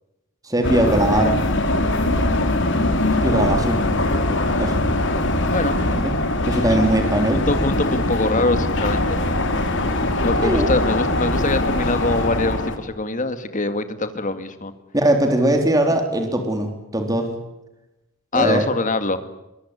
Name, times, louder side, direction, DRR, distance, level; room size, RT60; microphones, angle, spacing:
voice 1, 0.4-1.4 3.2-3.8 4.6-4.9 5.7-6.2 6.5-7.4 10.4-10.8 14.9-17.4 18.3-18.7, right 1 dB, 15° right, 4 dB, 3.6 m, -20 dB
sound 1, 0.6-12.8, left 1 dB, 60° left, 3.4 m, -21 dB
voice 2, 6.8-9.2 10.2-14.7 18.3-19.2, left 2 dB, 40° left, 10 dB, 2.2 m, -24 dB
23.0 x 23.0 x 9.9 m, 0.94 s
head